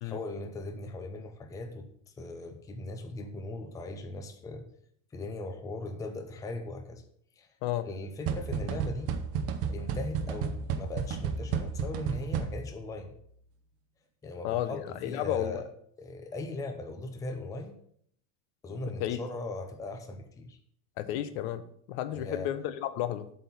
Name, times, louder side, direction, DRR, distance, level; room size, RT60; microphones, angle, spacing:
voice 1, 0.0-1.8 2.2-4.6 5.1-7.0 7.4-7.5 7.8-9.1 9.7-13.1 14.2-15.7 16.0-17.8 18.6-20.6 22.1-22.5, left 2 dB, 10° left, 5 dB, 0.5 m, -39 dB
sound 1, 8.3-12.9, right 6 dB, 40° right, 0.8 m, -32 dB
voice 2, 14.4-15.6 18.7-19.2 21.0-23.3, left 12 dB, 65° left, 12 dB, 0.8 m, -33 dB
7.9 x 4.3 x 7.0 m, 0.67 s
cardioid pair, 165°, 36 cm